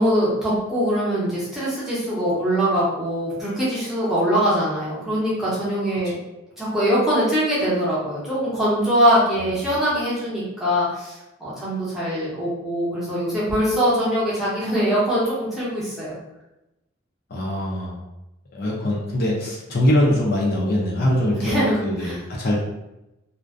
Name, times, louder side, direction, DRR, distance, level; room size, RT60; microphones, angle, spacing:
voice 1, 0.0-6.1 6.6-16.2 21.3-22.2, equal, ahead, -9 dB, 0.7 m, -22 dB
voice 2, 17.3-18.0 18.5-22.1 22.4-22.6, left 1 dB, 45° left, -3 dB, 0.4 m, -22 dB
2.5 x 2.1 x 2.4 m, 0.94 s
head